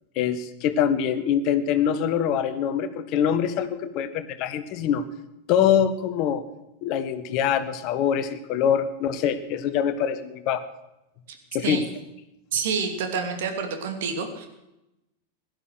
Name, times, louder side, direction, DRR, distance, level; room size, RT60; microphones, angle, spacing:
voice 1, 0.1-5.0 5.5-6.4 6.8-10.6 11.5-11.8, left 8 dB, 40° left, 12 dB, 1.4 m, -24 dB
voice 2, 12.5-14.5, right 5 dB, 55° right, 5 dB, 2.7 m, -28 dB
16.5 x 12.0 x 6.5 m, 0.90 s
figure-of-eight pair, 90°, 0 cm